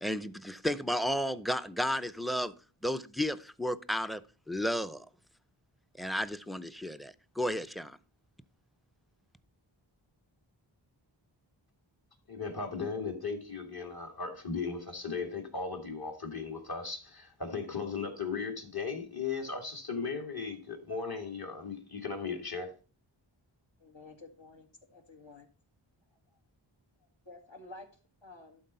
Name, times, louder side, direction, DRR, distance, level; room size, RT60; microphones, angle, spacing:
voice 1, 0.0-2.5 2.8-4.2 4.5-5.1 6.0-8.0, equal, ahead, 0.5 m, -33 dB
voice 2, 12.3-22.7, left 5 dB, 50° left, 2.1 m, -37 dB
voice 3, 23.8-25.5 27.3-27.9 28.2-28.6, left 2 dB, 70° left, 2.0 m, -51 dB
11.5 x 4.3 x 5.4 m
wide cardioid pair, 45°, 48 cm